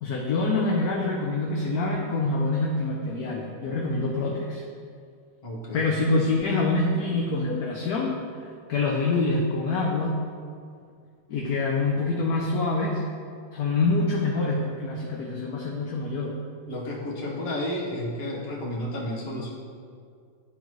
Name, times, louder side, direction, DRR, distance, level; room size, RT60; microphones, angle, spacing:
voice 1, 0.0-4.6 5.7-8.2 8.7-10.2 11.3-13.0 13.5-16.4, left 3 dB, 70° left, -1 dB, 1.0 m, -25 dB
voice 2, 5.4-6.1 16.7-19.5, left 1 dB, 35° left, -4 dB, 1.2 m, -32 dB
11.5 x 3.9 x 3.0 m, 2.2 s
omnidirectional pair, 2.1 m